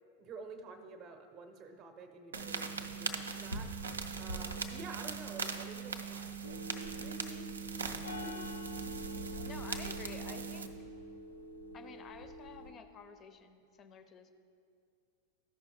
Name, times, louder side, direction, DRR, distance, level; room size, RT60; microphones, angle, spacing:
voice 1, 0.2-3.7 4.1-7.5 7.8-8.5, right 3 dB, 30° right, 6 dB, 0.7 m, -50 dB
sound 1, 2.3-10.7, right 5 dB, 70° right, 0.5 m, -40 dB
sound 2, 6.4-12.7, equal, 85° left, 0.6 m, -45 dB
voice 2, 9.4-10.7 11.7-14.3, left 6 dB, 25° left, 9 dB, 0.6 m, -51 dB
14.0 x 5.6 x 2.9 m, 2.4 s
figure-of-eight pair, 90°, 0 cm